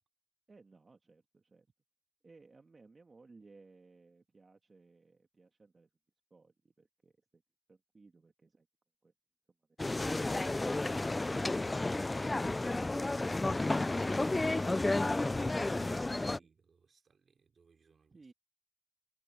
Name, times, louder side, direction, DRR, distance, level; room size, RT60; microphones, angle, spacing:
voice 1, 0.5-1.7 2.2-5.9 6.3-7.4 7.7-8.7 9.0-9.1 18.1-18.3, right 3 dB, 50° right, 1.8 m, -59 dB
sound 1, 9.8-16.4, left 2 dB, 30° left, 0.4 m, -32 dB
voice 2, 15.9-18.3, right 5 dB, 70° right, 3.5 m, -66 dB
cardioid pair, 50°, 0 cm